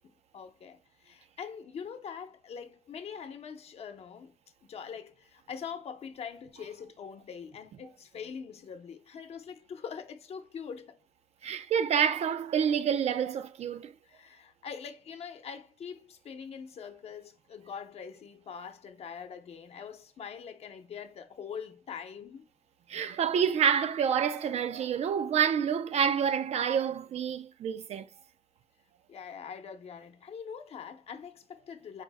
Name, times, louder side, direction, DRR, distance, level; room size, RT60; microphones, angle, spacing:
voice 1, 0.3-4.4 4.6-11.0 14.0-22.5 29.1-32.0, left 7 dB, 70° left, 0.7 m, -43 dB
voice 2, 11.4-13.9 22.9-28.1, right 8 dB, 80° right, 0.5 m, -28 dB
4.9 x 2.1 x 3.4 m
wide cardioid pair, 125°, 11 cm